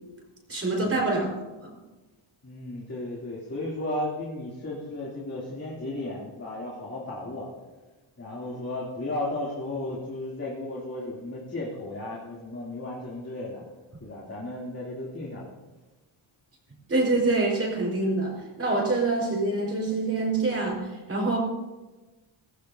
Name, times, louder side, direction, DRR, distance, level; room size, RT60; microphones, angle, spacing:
voice 1, 0.5-1.3 1.6-1.7 16.9-21.4, right 2 dB, 25° right, -2 dB, 4.6 m, -26 dB
voice 2, 2.4-7.5 8.2-13.6 14.0-15.5, left 1 dB, 30° left, -6 dB, 2.9 m, -34 dB
17.5 x 16.5 x 2.8 m, 1.2 s
cardioid pair, 125°, 50 cm